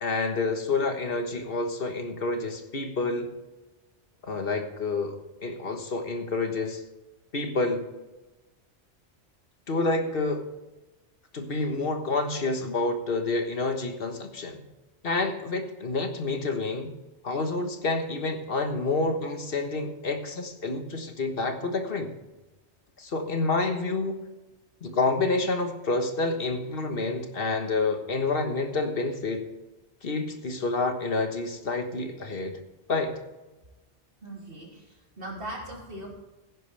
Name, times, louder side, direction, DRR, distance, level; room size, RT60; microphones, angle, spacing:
voice 1, 0.0-3.3 4.2-5.2 5.4-6.8 7.3-7.9 9.7-10.4 11.3-14.6 15.0-16.9 17.2-22.1 23.0-24.1 24.8-29.5 30.0-32.6 32.9-33.2, left 3 dB, 55° left, 5 dB, 1.6 m, -28 dB
voice 2, 34.2-36.1, right 1 dB, 50° right, -1 dB, 3.3 m, -39 dB
15.5 x 10.5 x 3.4 m, 1.1 s
omnidirectional pair, 1.2 m